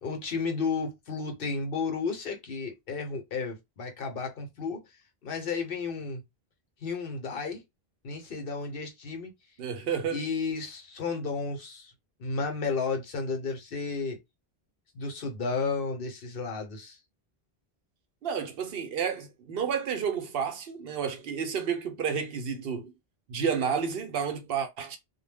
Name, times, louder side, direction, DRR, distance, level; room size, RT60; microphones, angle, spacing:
voice 1, 0.0-4.8 5.2-6.2 6.8-7.6 8.0-9.3 10.1-11.9 12.2-14.2 14.9-17.0, left 4 dB, 65° left, 0.9 m, -32 dB
voice 2, 9.6-10.2 18.2-22.9 23.3-25.0, right 7 dB, 70° right, 0.8 m, -31 dB
2.2 x 2.1 x 3.3 m
omnidirectional pair, 1.0 m